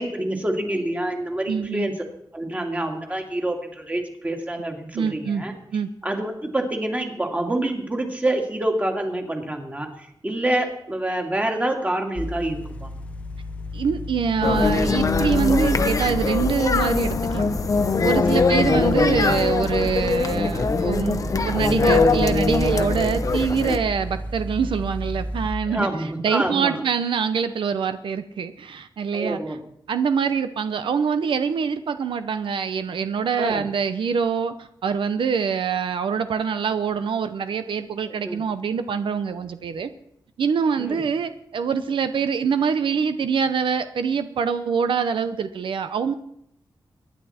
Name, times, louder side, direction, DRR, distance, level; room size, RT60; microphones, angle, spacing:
voice 1, 0.0-2.0 2.3-5.5 6.0-12.9 18.2-18.4 25.7-26.8 29.1-29.6 33.4-33.7 38.2-38.4 40.8-41.0, right 1 dB, 20° right, 3 dB, 2.3 m, -27 dB
voice 2, 1.5-1.9 4.9-5.4 5.7-5.9 13.7-17.5 18.0-29.4 29.9-39.9 40.4-46.1, right 6 dB, 90° right, 10 dB, 0.8 m, -24 dB
sound 1, 12.2-25.5, equal, 15° left, 0.7 m, -32 dB
sound 2, 14.4-23.8, left 4 dB, 45° left, 0.9 m, -22 dB
23.5 x 10.0 x 4.3 m, 0.75 s
wide cardioid pair, 140°, 8 cm